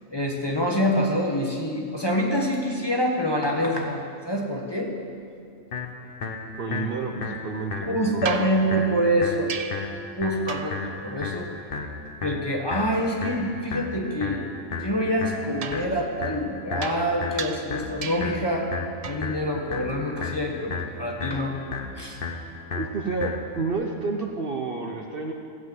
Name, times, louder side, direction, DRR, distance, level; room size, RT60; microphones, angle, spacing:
voice 1, 0.1-4.9 7.8-9.5 10.1-11.5 12.2-14.5 14.8-18.7 19.0-21.6 21.9-22.2, equal, 20° left, 0 dB, 1.3 m, -26 dB
sound 1, 5.7-23.7, left 4 dB, 45° left, 1.1 m, -34 dB
voice 2, 6.6-8.3 22.7-25.3, right 4 dB, 50° right, 2 dB, 0.9 m, -30 dB
sound 2, 8.2-10.0 10.5-10.9 15.6-18.5 19.0-19.4 21.4-21.5, right 6 dB, 70° right, 0.3 m, -36 dB
16.0 x 8.0 x 7.8 m, 2.4 s
omnidirectional pair, 1.4 m